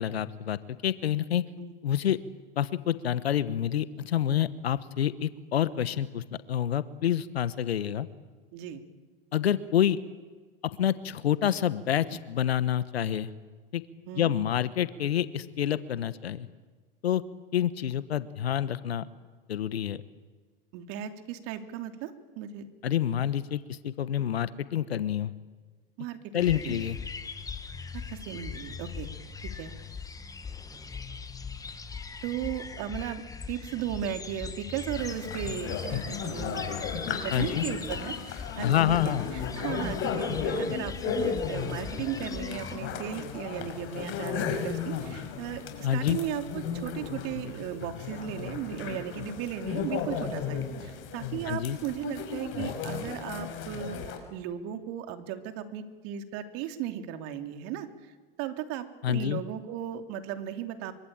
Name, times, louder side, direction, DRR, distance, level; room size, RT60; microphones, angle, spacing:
voice 1, 0.0-1.4 1.8-2.2 2.6-8.1 9.3-10.0 10.6-13.3 13.7-13.8 14.1-16.5 17.0-17.2 17.5-19.0 19.5-20.0 22.8-25.3 26.3-27.0 37.3-37.6 38.6-39.3 45.8-46.2 51.4-51.8 59.0-59.4, left 10 dB, 90° left, 15 dB, 1.3 m, -28 dB
voice 2, 20.7-22.7 26.0-26.9 27.9-29.1 29.4-29.7 32.2-36.7 37.0-45.6 45.9-58.1 58.4-60.9, right 10 dB, 50° right, 7 dB, 3.1 m, -36 dB
sound 1, 26.4-42.8, left 5 dB, 10° left, 1.6 m, -40 dB
sound 2, 35.0-54.2, left 7 dB, 40° left, 5.5 m, -34 dB
25.0 x 24.5 x 9.0 m, 1.4 s
hypercardioid pair, 115°, 30 cm